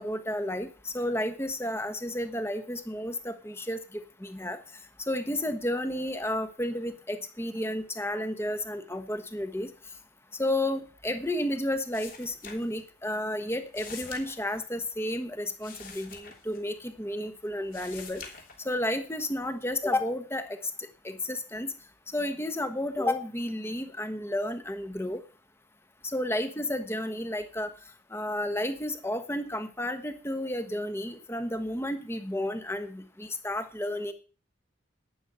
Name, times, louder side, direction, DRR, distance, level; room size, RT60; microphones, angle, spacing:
voice 1, 0.0-4.6 5.1-9.7 10.4-18.2 18.6-21.7 22.1-25.2 26.1-27.7 28.1-34.1, left 1 dB, 15° left, 9 dB, 1.2 m, -32 dB
sound 1, 11.9-13.1 13.4-17.2 17.5-19.0 19.4-20.0, left 5 dB, 45° left, 3.3 m, -46 dB
12.0 x 9.8 x 5.6 m, 0.37 s
head